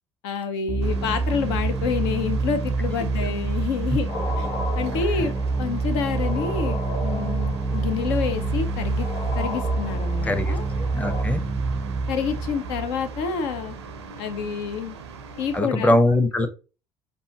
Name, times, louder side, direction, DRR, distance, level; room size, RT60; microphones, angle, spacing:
voice 1, 0.2-4.1 4.4-4.5 4.8-9.1 9.4-10.6 12.1-13.8 14.2-15.0 15.4-15.9, left 6 dB, 65° left, 8 dB, 0.6 m, -28 dB
sound 1, 0.7-14.0, right 3 dB, 15° right, 0.4 m, -27 dB
sound 2, 0.8-15.6, right 3 dB, 80° right, 0.5 m, -38 dB
sound 3, 4.1-11.2, left 2 dB, 35° left, 1.4 m, -35 dB
voice 2, 10.2-10.6 10.9-11.4 15.5-16.5, left 1 dB, 10° left, 8 dB, 0.7 m, -21 dB
5.3 x 2.1 x 2.8 m, 0.32 s
figure-of-eight pair, 55°, 14 cm